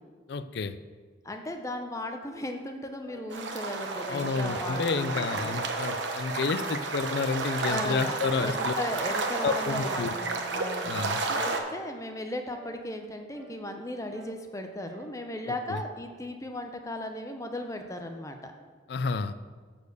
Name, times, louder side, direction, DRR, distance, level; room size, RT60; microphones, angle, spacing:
voice 1, 0.3-0.8 4.1-8.7 9.4-10.1 10.9-11.2 15.7-15.8 18.9-19.3, left 4 dB, 60° left, 13 dB, 0.4 m, -30 dB
voice 2, 1.2-5.6 7.6-18.5, left 1 dB, 15° left, 5 dB, 0.6 m, -36 dB
sound 1, 3.1-3.3 3.8-4.1 4.6-4.9 5.4-5.7 6.2-6.5 7.0-7.3 7.8-8.1 8.6-8.9 9.4-9.7 10.1-10.4 10.9-11.3 11.7-12.1 12.5-12.8 13.3-13.6 14.1-14.4 14.9-15.2, right 1 dB, 50° right, 2.6 m, -50 dB
sound 2, 3.3-11.6, right 3 dB, 70° right, 0.9 m, -32 dB
9.6 x 4.3 x 6.8 m, 1.5 s
head